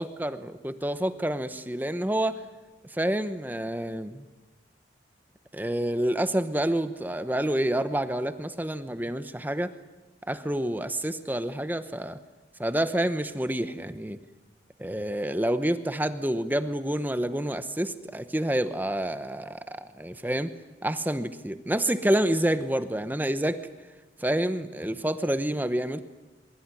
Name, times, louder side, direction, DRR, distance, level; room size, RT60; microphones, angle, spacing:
voice 1, 0.0-2.4 2.9-4.3 5.5-9.7 10.3-12.2 12.6-14.2 14.8-20.5 20.8-23.6 24.2-26.0, right 1 dB, 10° right, 11 dB, 0.9 m, -28 dB
23.0 x 22.0 x 9.7 m, 1.2 s
head